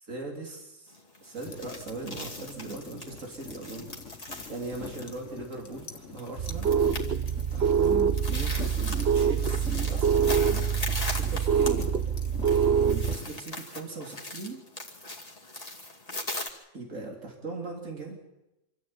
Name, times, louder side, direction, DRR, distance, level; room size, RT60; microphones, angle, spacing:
voice 1, 0.0-3.9 4.2-6.7 7.5-10.7 11.1-12.0 12.8-14.6 16.7-18.2, right 3 dB, 85° right, 1 dB, 3.6 m, -39 dB
sound 1, 0.9-16.5, left 2 dB, 30° left, 2.6 m, -40 dB
sound 2, 1.4-13.4, left 4 dB, 70° left, 2.0 m, -45 dB
sound 3, 6.4-13.2, right 7 dB, 55° right, 1.1 m, -25 dB
26.0 x 14.0 x 8.9 m, 0.95 s
omnidirectional pair, 1.3 m